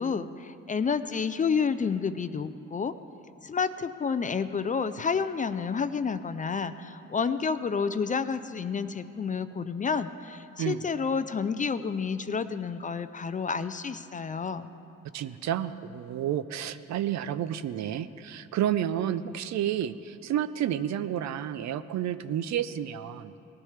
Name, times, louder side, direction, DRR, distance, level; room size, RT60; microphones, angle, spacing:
voice 1, 0.0-2.9 3.4-14.7, left 5 dB, 25° left, 12 dB, 0.4 m, -30 dB
voice 2, 15.1-23.3, right 10 dB, 65° right, 13 dB, 0.5 m, -30 dB
18.0 x 12.0 x 3.3 m, 2.8 s
cardioid pair, 90°, 30 cm